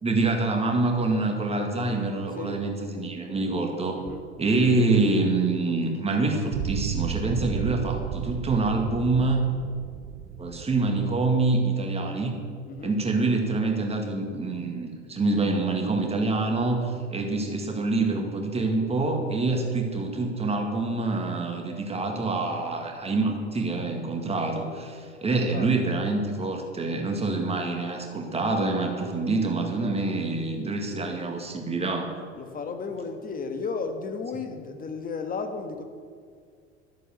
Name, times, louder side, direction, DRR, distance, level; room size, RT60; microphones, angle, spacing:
voice 1, 0.0-4.0 4.4-9.4 10.4-12.3 12.8-32.1, right 3 dB, 15° right, 2 dB, 2.0 m, -26 dB
voice 2, 2.3-2.6 3.9-4.3 12.7-13.0 25.3-25.7 32.3-35.8, left 4 dB, 25° left, 6 dB, 1.5 m, -34 dB
sound 1, 6.5-11.4, right 8 dB, 45° right, 0.8 m, -33 dB
13.0 x 7.6 x 6.6 m, 2.1 s
figure-of-eight pair, 75°, 35 cm